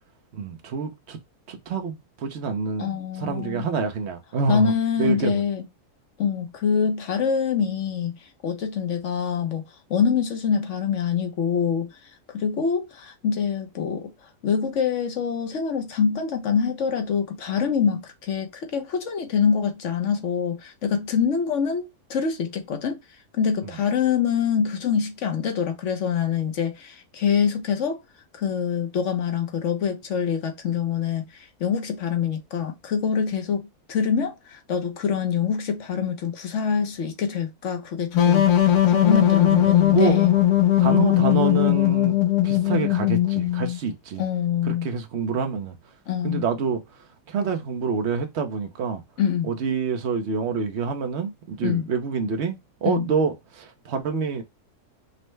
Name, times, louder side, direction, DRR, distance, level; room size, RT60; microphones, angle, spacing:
voice 1, 0.3-1.2 1.5-4.7 5.0-5.4 23.6-23.7 39.4-40.4 40.8-42.2 42.4-44.2 44.6-45.7 46.2-46.8 47.3-49.0 49.5-54.4, right 5 dB, 55° right, 0.9 m, -27 dB
voice 2, 2.8-3.7 4.5-5.6 6.2-12.0 12.3-23.0 23.3-28.0 28.3-38.5 38.8-40.3 44.2-44.9 46.1-46.4 49.2-49.5 51.6-51.9 52.8-53.1, left 7 dB, 60° left, 1.0 m, -25 dB
sound 1, 38.1-43.8, left 13 dB, 75° left, 1.2 m, -19 dB
5.4 x 2.1 x 3.2 m
omnidirectional pair, 1.6 m